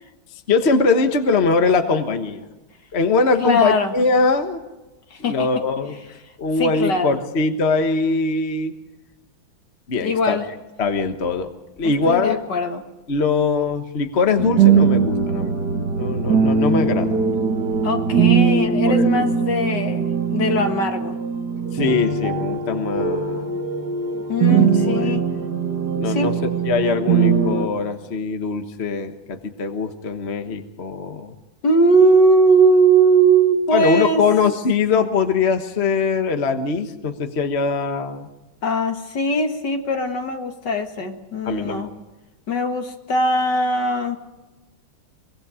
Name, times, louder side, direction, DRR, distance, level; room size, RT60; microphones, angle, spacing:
voice 1, 0.5-2.5 2.9-4.6 5.2-6.0 6.4-8.7 9.9-10.4 10.8-11.5 11.8-12.4 13.1-15.6 16.0-17.2 18.5-19.3 21.7-23.5 24.5-24.6 24.9-25.2 26.0-26.3 26.7-31.3 33.7-38.3 41.4-41.9, left 4 dB, 35° left, 6 dB, 1.4 m, -22 dB
voice 2, 3.4-3.9 5.1-5.5 6.6-7.2 10.0-10.4 11.8-12.8 17.8-21.2 24.3-25.2 26.0-26.3 31.6-34.2 38.6-41.9 42.5-44.2, right 2 dB, 60° left, 5 dB, 2.4 m, -20 dB
sound 1, 14.4-27.7, right 6 dB, 55° right, 2.3 m, -20 dB
24.0 x 22.0 x 5.0 m, 1.1 s
omnidirectional pair, 2.2 m